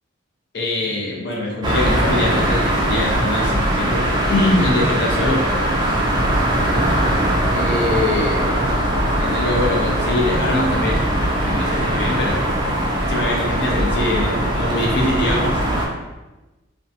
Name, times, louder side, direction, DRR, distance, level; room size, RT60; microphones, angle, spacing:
voice 1, 0.5-5.4 7.5-8.5 9.1-11.1 11.4-12.5 13.0-15.6, left 2 dB, 55° left, -2 dB, 0.6 m, -23 dB
sound 1, 1.6-15.9, right 1 dB, 20° right, 0.3 m, -20 dB
2.5 x 2.2 x 2.6 m, 1.1 s
head